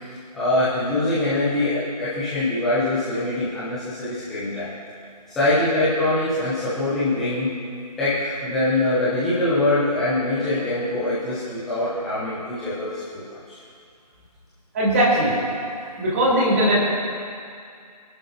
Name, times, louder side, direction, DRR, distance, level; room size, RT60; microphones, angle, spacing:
voice 1, 0.3-4.7 5.3-7.5 8.0-13.6, left 2 dB, ahead, -14 dB, 0.7 m, -23 dB
voice 2, 14.7-15.4 16.0-16.8, right 1 dB, 20° right, -7 dB, 3.9 m, -19 dB
27.5 x 11.0 x 2.7 m, 2.4 s
figure-of-eight pair, 160°, 21 cm